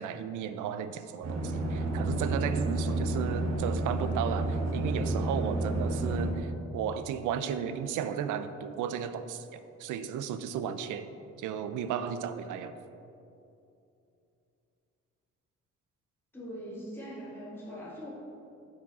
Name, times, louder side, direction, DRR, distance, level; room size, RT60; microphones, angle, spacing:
voice 1, 0.0-11.1 11.4-12.7, right 8 dB, 85° right, 11 dB, 0.5 m, -34 dB
sound 1, 1.2-6.3, right 2 dB, 60° right, 1.1 m, -30 dB
voice 2, 16.3-18.1, equal, 5° left, -6 dB, 1.9 m, -41 dB
9.7 x 5.1 x 4.0 m, 2.7 s
cardioid pair, 90°, 30 cm